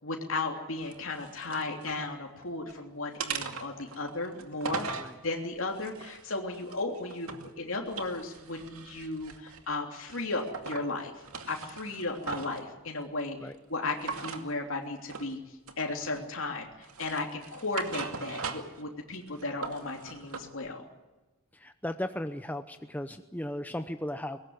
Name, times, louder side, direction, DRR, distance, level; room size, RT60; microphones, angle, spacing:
voice 1, 0.0-4.9 5.2-11.1 11.5-15.4 15.8-16.7 17.0-20.8, left 2 dB, 65° left, 1 dB, 3.2 m, -35 dB
sound 1, 0.8-2.0 2.4-2.8 3.2-5.1 5.7-7.5 7.9-9.7 10.1-10.9 11.2-12.6 14.0-14.5 15.1-15.3 15.7-16.4 16.8-18.8 19.2-20.5, right 5 dB, 85° right, 2.3 m, -40 dB
voice 2, 21.5-24.4, left 1 dB, 10° left, 8 dB, 0.8 m, -36 dB
23.0 x 19.5 x 9.6 m, 1.1 s
head